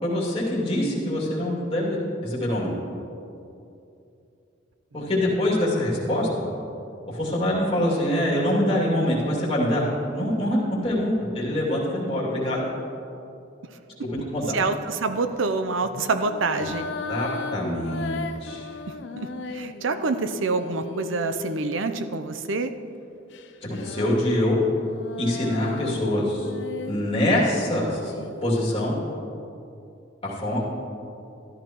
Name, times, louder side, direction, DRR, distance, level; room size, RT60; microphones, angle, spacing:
voice 1, 0.0-2.7 4.9-6.3 7.1-12.6 14.1-14.6 16.6-16.7 17.1-18.7 23.7-24.6 25.2-26.5 26.9-28.1 28.4-28.9 30.2-30.6, left 1 dB, 30° left, -6 dB, 2.5 m, -24 dB
sound 1, 14.1-14.4 15.8-22.4 23.3-28.9, left 3 dB, 65° left, 0.5 m, -37 dB
voice 2, 14.5-16.9 19.2-19.3 19.5-22.7, right 3 dB, 85° right, 9 dB, 0.6 m, -26 dB
13.5 x 12.0 x 3.0 m, 2.7 s
head